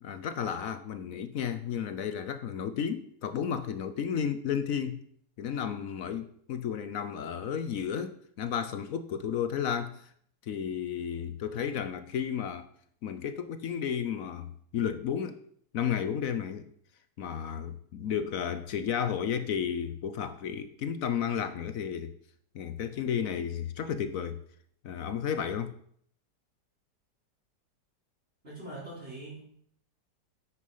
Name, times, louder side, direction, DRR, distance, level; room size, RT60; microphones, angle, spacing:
voice 1, 0.0-5.1 5.4-10.1 10.4-12.7 13.0-15.4 15.7-16.7 17.2-22.2 22.5-24.4 24.8-25.7, left 8 dB, 60° left, 1.0 m, -33 dB
voice 2, 28.4-29.4, right 2 dB, 35° right, 4.1 m, -42 dB
9.5 x 8.2 x 5.5 m
omnidirectional pair, 1.9 m